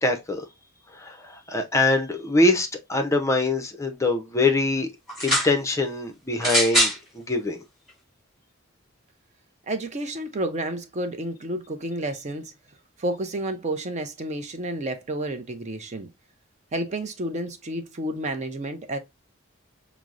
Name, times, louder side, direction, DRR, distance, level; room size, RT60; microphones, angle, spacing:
voice 1, 0.0-0.4 1.0-4.9 5.2-7.6, left 2 dB, 15° left, 0.5 m, -23 dB
sound 1, 5.1-5.5 6.4-7.0 7.9-8.0, equal, ahead, 2.5 m, -22 dB
voice 2, 9.7-12.5 13.0-16.1 16.7-19.0, right 1 dB, 35° right, 0.5 m, -30 dB
5.9 x 2.0 x 2.4 m
head